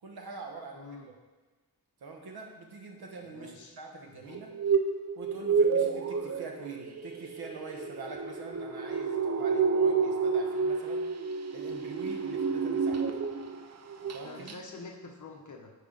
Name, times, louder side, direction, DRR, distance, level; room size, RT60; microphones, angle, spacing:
voice 1, 0.0-1.1 2.0-4.5 5.1-11.0 11.5-13.2 14.1-14.6, right 4 dB, 75° right, 2 dB, 1.2 m, -44 dB
voice 2, 0.7-1.1 3.2-3.8 4.1-4.4 14.2-15.7, left 3 dB, 50° left, 2 dB, 1.0 m, -47 dB
sound 1, 4.3-13.6 13.9-14.2 14.5-14.6, right 5 dB, 45° right, 0.5 m, -29 dB
9.3 x 4.9 x 3.9 m, 1.3 s
wide cardioid pair, 145°, 38 cm